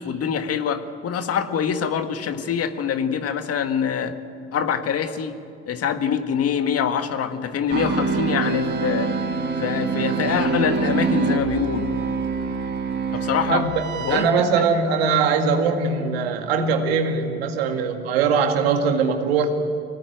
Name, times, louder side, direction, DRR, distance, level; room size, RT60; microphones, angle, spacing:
voice 1, 0.0-4.1 4.5-5.4 5.7-9.1 9.6-11.9 13.1-13.7 14.0-14.3, left 7 dB, 55° left, 8 dB, 1.8 m, -24 dB
sound 1, 7.7-14.3, right 4 dB, 40° right, 4.7 m, -25 dB
voice 2, 13.5-13.8 14.1-19.6, right 5 dB, 85° right, 4 dB, 2.2 m, -21 dB
24.5 x 18.0 x 9.3 m, 2.4 s
hypercardioid pair, 60°, 30 cm